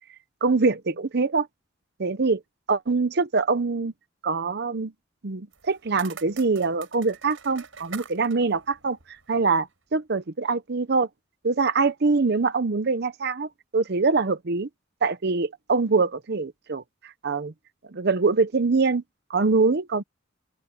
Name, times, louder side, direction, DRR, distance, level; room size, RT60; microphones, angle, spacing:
voice 1, 0.4-1.5 2.0-2.4 2.7-3.9 4.2-4.9 5.2-9.0 9.3-11.1 11.4-14.7 15.0-17.5 17.9-19.0 19.3-20.0, right 4 dB, 55° right, 0.7 m, -24 dB
sound 1, 5.5-9.7, right 6 dB, 70° right, 6.9 m, -45 dB
open air
head